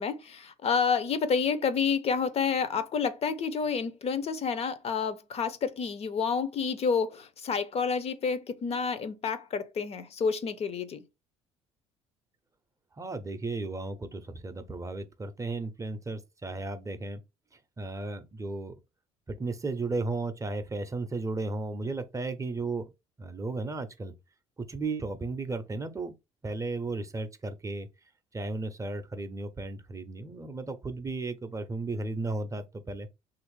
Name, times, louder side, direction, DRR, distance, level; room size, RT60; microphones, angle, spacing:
voice 1, 0.0-11.0, left 6 dB, 40° left, 0.5 m, -29 dB
voice 2, 12.9-17.2 17.5-18.8 19.3-22.9 23.2-24.1 24.7-26.1 26.4-27.9 28.3-33.1, right 3 dB, 20° right, 0.5 m, -34 dB
3.1 x 2.5 x 3.1 m
hypercardioid pair, 65°, 16 cm